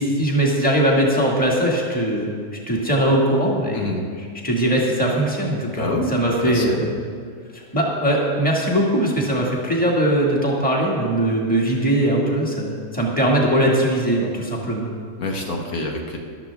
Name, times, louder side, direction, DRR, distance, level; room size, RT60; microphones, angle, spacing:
voice 1, 0.0-3.9 4.4-6.9 7.5-14.9, right 1 dB, 5° left, -2 dB, 1.7 m, -20 dB
voice 2, 3.7-4.0 5.7-6.1 6.4-6.8 15.2-16.2, left 2 dB, 75° left, 1 dB, 1.7 m, -26 dB
14.0 x 12.0 x 3.4 m, 2.1 s
omnidirectional pair, 1.5 m